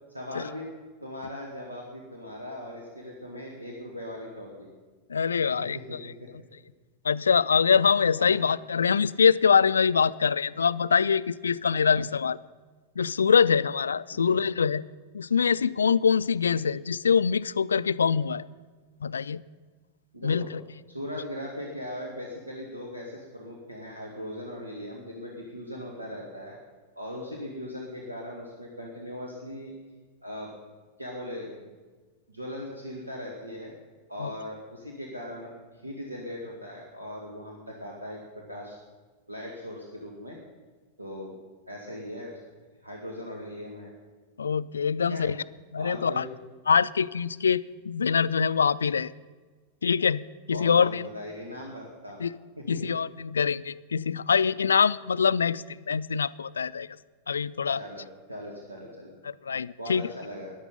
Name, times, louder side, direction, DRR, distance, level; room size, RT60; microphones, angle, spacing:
voice 1, 0.1-0.7 1.0-4.7 5.4-6.3 8.2-8.4 14.1-14.4 20.1-20.5 20.9-26.6 26.9-29.7 30.2-30.5 31.0-31.7 32.3-33.7 34.1-38.8 39.3-40.4 41.0-41.4 41.7-42.4 42.8-43.9 45.1-45.2 45.7-46.3 50.5-52.2 52.6-52.9 57.8-59.1 59.8-60.5, left 1 dB, 85° right, -1 dB, 1.8 m, -39 dB
voice 2, 5.1-6.0 7.0-12.4 13.0-14.8 15.1-18.5 19.0-19.4 20.2-20.6 34.2-34.3 44.4-45.4 45.7-46.3 46.7-49.1 49.8-51.0 52.2-52.3 52.7-56.9 57.3-57.8 59.2-60.1, left 6 dB, 70° left, 17 dB, 0.3 m, -24 dB
15.0 x 11.0 x 5.3 m, 1.4 s
figure-of-eight pair, 90°, 0 cm